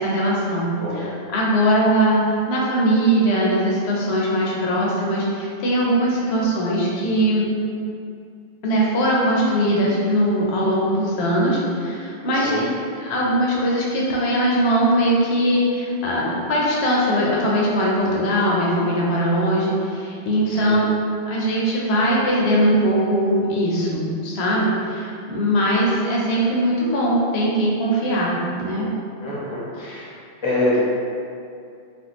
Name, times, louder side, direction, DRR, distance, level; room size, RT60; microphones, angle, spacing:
voice 1, 0.0-0.7 0.9-7.5 8.6-20.9 21.3-28.9, equal, 65° left, -4 dB, 0.9 m, -20 dB
voice 2, 0.8-1.1 12.3-12.6 20.5-20.9 29.2-30.1 30.4-30.8, left 1 dB, 30° left, -7 dB, 0.7 m, -26 dB
3.4 x 2.3 x 2.9 m, 2.4 s
omnidirectional pair, 1.3 m